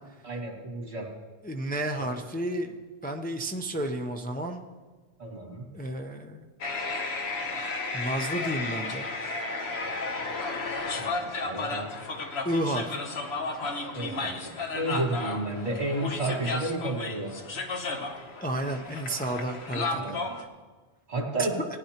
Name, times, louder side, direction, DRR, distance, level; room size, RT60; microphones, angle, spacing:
voice 1, 0.2-1.1 2.0-2.1 5.2-5.7 11.0-11.9 13.9-17.3 19.9-20.2 21.1-21.6, right 2 dB, 70° right, 1 dB, 2.5 m, -32 dB
voice 2, 1.4-4.6 5.7-6.5 7.9-9.1 12.4-13.1 18.4-20.2, right 1 dB, 10° left, 3 dB, 0.5 m, -32 dB
sound 1, 6.6-20.5, left 3 dB, 70° left, 1.3 m, -33 dB
18.0 x 10.5 x 2.9 m, 1.3 s
omnidirectional pair, 1.1 m